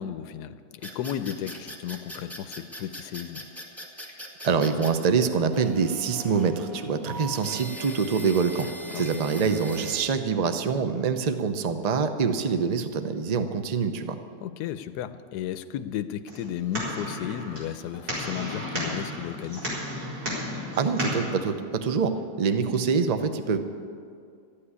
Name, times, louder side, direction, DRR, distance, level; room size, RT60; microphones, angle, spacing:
voice 1, 0.0-3.4 8.9-9.2 14.4-19.7, left 10 dB, 80° left, 11 dB, 1.2 m, -34 dB
sound 1, 0.8-4.9 5.5-10.1, equal, ahead, 1.6 m, -40 dB
voice 2, 4.4-8.7 8.9-14.2 20.7-22.1 22.4-23.6, right 5 dB, 40° right, 8 dB, 0.6 m, -25 dB
sound 2, 16.3-21.3, equal, 65° right, 4.8 m, -33 dB
13.0 x 8.8 x 9.7 m, 2.3 s
omnidirectional pair, 1.8 m